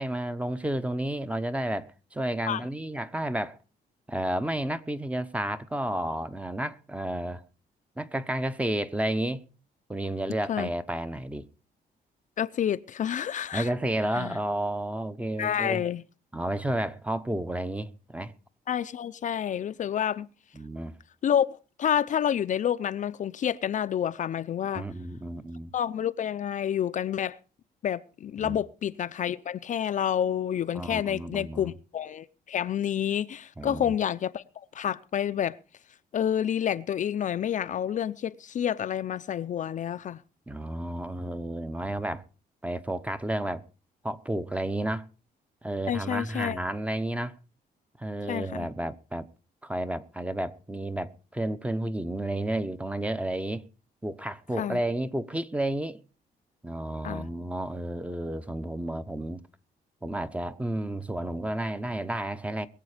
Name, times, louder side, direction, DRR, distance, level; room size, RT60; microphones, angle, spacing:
voice 1, 0.0-3.6 4.1-7.4 8.0-9.4 9.9-11.5 13.5-15.8 16.3-18.3 20.5-20.9 24.6-25.7 28.4-28.6 30.7-31.7 33.6-33.9 40.5-42.2 42.6-43.6 44.0-45.1 45.6-47.3 48.0-49.3 49.6-53.6 54.0-56.0 56.6-59.4 60.0-62.7, right 1 dB, 10° right, 0.9 m, -31 dB
voice 2, 12.4-13.7 14.1-14.4 15.4-16.0 18.7-20.3 21.2-24.8 25.7-27.4 27.8-35.6 36.1-40.2 45.9-46.6 48.3-48.7 54.6-54.8 57.0-57.3, left 9 dB, 50° left, 0.6 m, -29 dB
22.0 x 8.1 x 5.0 m
cardioid pair, 130°, 17 cm